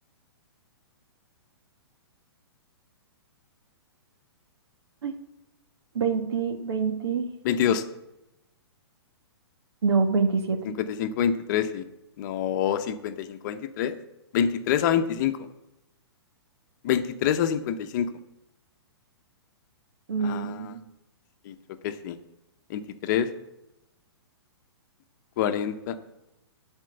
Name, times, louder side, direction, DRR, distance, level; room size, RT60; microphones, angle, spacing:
voice 1, 5.9-7.2 9.8-10.7 20.1-20.8, right 5 dB, 75° right, 6 dB, 1.5 m, -26 dB
voice 2, 7.4-7.8 10.8-11.8 12.2-14.0 14.3-15.4 16.8-18.1 20.2-20.7 21.4-21.6 21.8-22.2 22.7-23.3 25.4-26.0, left 9 dB, 45° left, 9 dB, 0.8 m, -26 dB
11.5 x 4.5 x 7.6 m, 0.92 s
hypercardioid pair, 140°, 14 cm